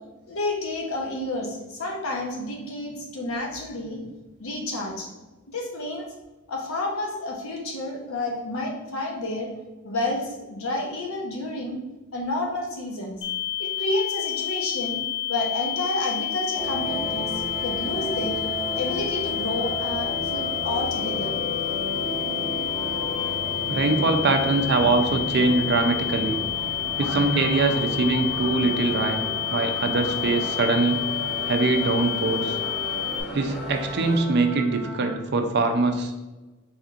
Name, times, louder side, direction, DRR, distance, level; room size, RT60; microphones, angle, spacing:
voice 1, 0.3-4.0 4.4-5.1 5.5-6.1 6.5-9.5 9.8-11.8 12.1-13.2 13.6-15.0 15.3-17.3 17.6-18.4 18.7-21.4, left 2 dB, 85° left, 0 dB, 0.9 m, -30 dB
sound 1, 13.2-33.2, left 12 dB, 60° left, 0.6 m, -29 dB
sound 2, 16.5-34.2, equal, 40° left, 1.3 m, -34 dB
sound 3, 22.7-35.2, right 1 dB, ahead, 1.1 m, -41 dB
voice 2, 23.7-26.4 27.0-31.0 31.4-32.6 33.3-36.1, right 3 dB, 55° right, 5 dB, 0.5 m, -23 dB
4.2 x 3.6 x 2.4 m, 1.1 s
head